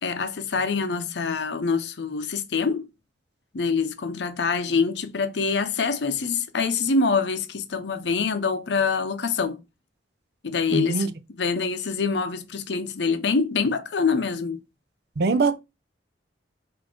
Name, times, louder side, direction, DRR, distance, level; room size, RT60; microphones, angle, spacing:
voice 1, 0.0-2.9 3.5-9.6 10.4-14.6, left 5 dB, 70° left, 0.6 m, -25 dB
voice 2, 10.7-11.1 15.2-15.6, right 4 dB, 65° right, 0.5 m, -22 dB
4.1 x 2.6 x 4.4 m
head